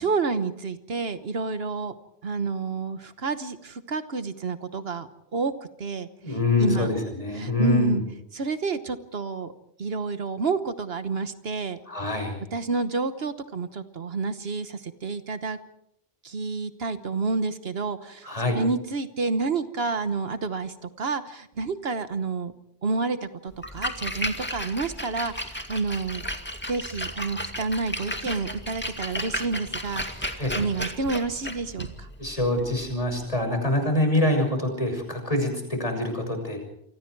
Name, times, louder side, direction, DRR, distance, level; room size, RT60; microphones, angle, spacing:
voice 1, 0.0-1.9 2.2-5.5 5.8-6.1 6.6-6.9 7.4-8.0 8.3-9.5 9.8-11.8 12.5-15.6 16.2-22.5 22.8-26.2 26.7-32.1, right 4 dB, 70° right, 11 dB, 1.4 m, -29 dB
voice 2, 6.2-8.0 11.9-12.4 18.2-18.6 30.4-30.5 32.2-36.6, left 2 dB, 35° left, 4 dB, 6.5 m, -25 dB
Splash splatter, 23.5-33.4, equal, 10° left, 2.1 m, -34 dB
28.5 x 25.0 x 4.7 m, 0.74 s
omnidirectional pair, 1.1 m